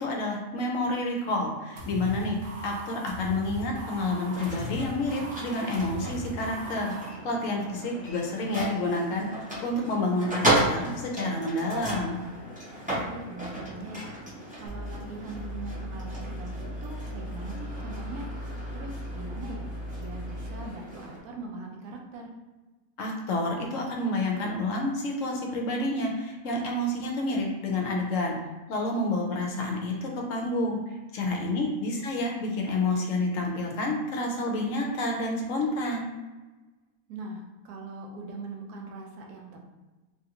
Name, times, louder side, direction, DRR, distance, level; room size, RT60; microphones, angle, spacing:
voice 1, 0.0-6.9 7.2-12.2 23.0-28.4 28.7-36.1, left 2 dB, 70° left, 0 dB, 0.9 m, -29 dB
sound 1, 1.8-7.1, equal, 65° right, 1.0 m, -39 dB
sound 2, 4.0-21.2, right 1 dB, 10° right, 0.3 m, -35 dB
voice 2, 7.6-8.1 12.9-14.1 14.5-18.3 18.7-19.7 20.0-22.3 31.4-32.1 37.1-39.5, right 2 dB, 85° right, 1 dB, 1.1 m, -41 dB
sound 3, 14.7-20.8, equal, 45° right, 0.7 m, -38 dB
3.2 x 2.5 x 2.8 m, 1.2 s
omnidirectional pair, 1.5 m